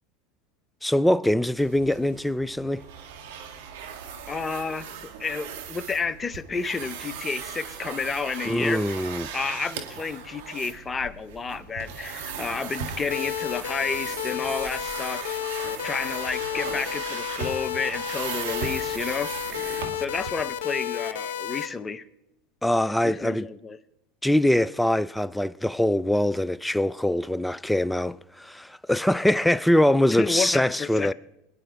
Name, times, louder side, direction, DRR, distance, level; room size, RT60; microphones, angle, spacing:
voice 1, 0.8-2.8 8.4-9.3 22.6-23.5 24.2-31.1, left 1 dB, 5° left, 0.4 m, -23 dB
sound 1, 1.6-20.3, right 7 dB, 70° right, 1.8 m, -38 dB
voice 2, 4.3-9.0 9.3-22.0 23.0-23.8 30.1-31.1, left 5 dB, 20° left, 0.8 m, -31 dB
sound 2, 13.1-21.7, left 10 dB, 75° left, 0.8 m, -31 dB
22.0 x 10.5 x 3.5 m
hypercardioid pair, 85°, 0 cm